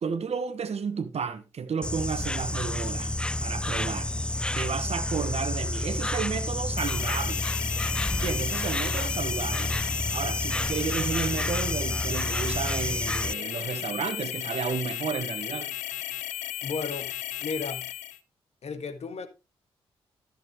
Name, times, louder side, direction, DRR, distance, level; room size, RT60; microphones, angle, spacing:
voice 1, 0.0-3.1 3.4-4.1 4.5-7.4 8.1-9.8 10.1-15.7, right 6 dB, 60° right, 1.3 m, -32 dB
Insect, 1.8-13.3, left 1 dB, 10° left, 0.4 m, -29 dB
sound 1, 6.8-18.2, left 14 dB, 85° left, 0.6 m, -35 dB
voice 2, 16.6-17.1 17.4-17.9 18.6-19.3, left 4 dB, 60° left, 1.7 m, -34 dB
13.5 x 6.6 x 3.2 m
hypercardioid pair, 40°, 12 cm